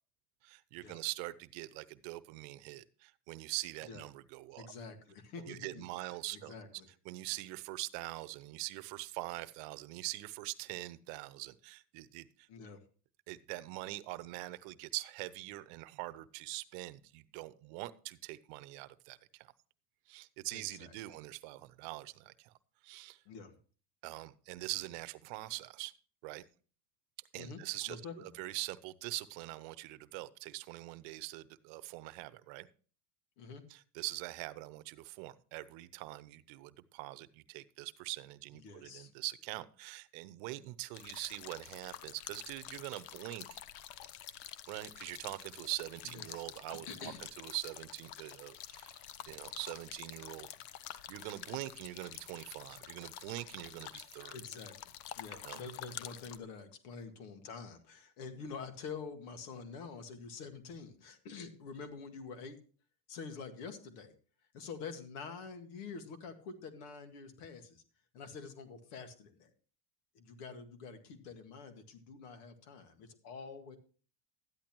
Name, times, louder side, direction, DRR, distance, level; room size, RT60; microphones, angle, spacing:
voice 1, 0.4-4.7 5.4-6.5 7.1-12.3 13.3-19.5 20.1-22.5 22.8-23.2 24.0-25.9 26.2-26.4 27.3-28.0 28.4-32.7 33.7-43.6 44.7-49.0 49.3-50.5 51.1-54.4 55.3-55.6, right 19 dB, 65° right, 16 dB, 0.8 m, -43 dB
voice 2, 4.5-6.9 12.5-12.8 20.5-21.0 23.3-23.6 27.4-27.6 27.9-28.3 33.4-33.6 38.5-39.1 46.0-46.2 46.7-47.2 54.3-54.7 55.2-62.6 63.1-64.1 64.5-67.8 68.1-69.5 70.1-73.8, left 5 dB, 80° left, 8 dB, 2.0 m, -47 dB
sound 1, 40.9-56.4, left 11 dB, 60° left, 0.9 m, -48 dB
13.0 x 10.5 x 3.0 m, 0.40 s
supercardioid pair, 100°, 46 cm